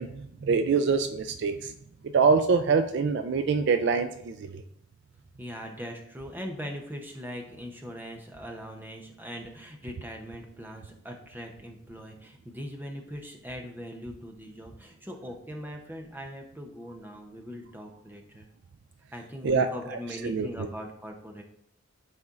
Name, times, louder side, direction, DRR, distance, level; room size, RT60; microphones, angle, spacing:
voice 1, 0.0-1.7 2.1-4.6 19.4-20.0 20.2-20.5, right 5 dB, 55° right, 9 dB, 0.3 m, -25 dB
voice 2, 5.4-18.5 19.1-21.4, equal, 10° right, 2 dB, 0.7 m, -41 dB
11.5 x 4.3 x 2.5 m, 0.73 s
head